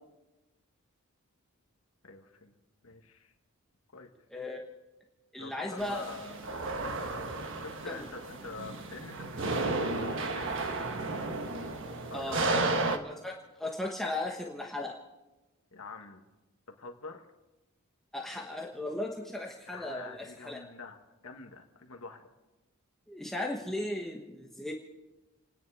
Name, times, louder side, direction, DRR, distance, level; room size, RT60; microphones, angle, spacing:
voice 1, 2.0-2.5 2.8-3.3 3.9-4.1 5.4-6.7 7.6-10.5 12.1-12.5 15.7-16.2 16.7-17.3 19.7-22.2, left 4 dB, 70° left, 4 dB, 1.6 m, -46 dB
voice 2, 5.3-6.0 7.9-8.1 12.1-15.0 18.1-20.6 23.1-24.7, left 1 dB, ahead, -1 dB, 1.1 m, -37 dB
sound 1, 5.8-13.0, right 3 dB, 60° right, 1.3 m, -33 dB
29.5 x 10.0 x 4.8 m, 1.1 s
head